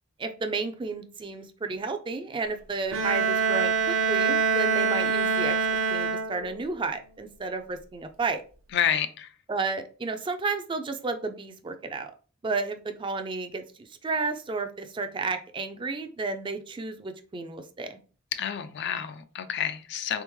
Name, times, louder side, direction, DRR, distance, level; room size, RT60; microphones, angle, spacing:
voice 1, 0.2-8.4 9.5-12.1 12.4-18.0, right 4 dB, 25° right, 0.4 m, -32 dB
Bowed string instrument, 2.9-6.7, right 5 dB, 80° right, 0.5 m, -25 dB
voice 2, 8.7-9.3 18.3-20.2, left 9 dB, 55° left, 0.4 m, -29 dB
3.6 x 3.3 x 3.0 m
head